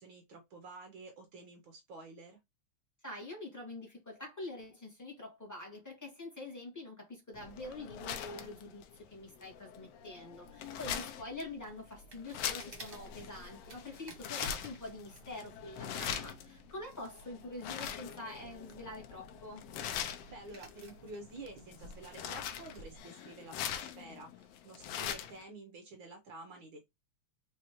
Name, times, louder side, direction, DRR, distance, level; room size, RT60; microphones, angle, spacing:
voice 1, 0.0-2.4 20.3-26.9, right 2 dB, 75° right, 1.1 m, -50 dB
voice 2, 3.0-19.6, left 2 dB, 10° left, 1.1 m, -46 dB
sound 1, 7.3-25.4, left 9 dB, 75° left, 1.5 m, -43 dB
sound 2, 10.4-23.0, right 2 dB, 40° right, 1.1 m, -56 dB
4.9 x 3.4 x 3.0 m
omnidirectional pair, 3.3 m